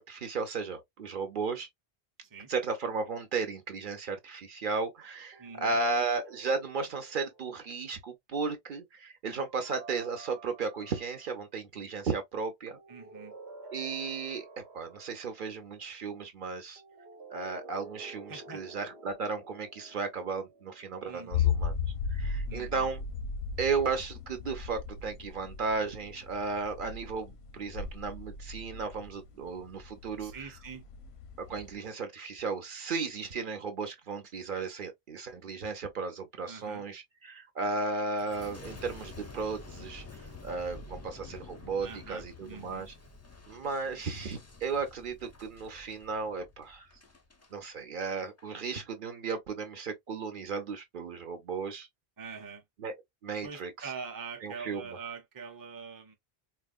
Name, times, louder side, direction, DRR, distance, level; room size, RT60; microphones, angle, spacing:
voice 1, 0.0-1.7 2.5-12.8 13.7-14.5 14.7-16.8 17.3-21.7 22.1-23.0 23.6-30.5 31.5-40.0 40.4-42.9 43.5-46.9 47.5-51.9 52.8-52.9 53.2-53.9 54.4-54.8, right 4 dB, 55° right, 0.8 m, -35 dB
sound 1, 5.3-7.8 9.5-11.3 12.7-15.4 16.8-21.3, right 4 dB, 85° right, 1.1 m, -51 dB
voice 2, 5.4-5.8 12.9-13.3 18.3-18.6 21.1-21.5 22.5-22.9 30.2-30.8 36.5-36.8 41.8-42.9 52.2-52.6 53.4-56.1, right 5 dB, 25° right, 0.6 m, -44 dB
sound 2, 21.3-31.7, left 6 dB, 90° left, 0.9 m, -36 dB
Boom, 38.2-47.5 48.1-48.5, left 3 dB, 25° left, 0.3 m, -49 dB
4.1 x 2.2 x 2.4 m
omnidirectional pair, 1.0 m